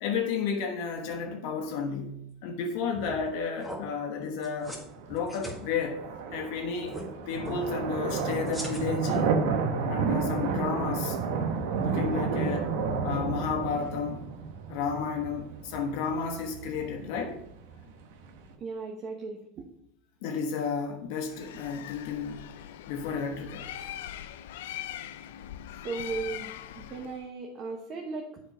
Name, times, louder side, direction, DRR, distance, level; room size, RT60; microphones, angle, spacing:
voice 1, 0.0-4.8 5.1-6.0 6.3-7.0 7.3-9.3 9.9-11.2 11.8-12.7 13.0-14.2 14.7-17.4 20.2-22.5 22.9-23.7, left 5 dB, 70° left, 3 dB, 1.1 m, -32 dB
sound 1, 2.9-3.3 3.6-3.8 4.4-4.8 5.1-5.6 6.8-7.0 7.4-7.6 8.4-9.1, equal, 5° right, 1.6 m, -39 dB
sound 2, 4.6-18.5, right 5 dB, 80° right, 1.0 m, -31 dB
voice 2, 18.6-19.6 25.8-28.4, right 4 dB, 40° right, 1 dB, 1.0 m, -37 dB
Bird, 21.2-27.3, left 11 dB, 90° left, 0.4 m, -41 dB
7.4 x 4.5 x 5.5 m, 0.78 s
supercardioid pair, 125°, 0 cm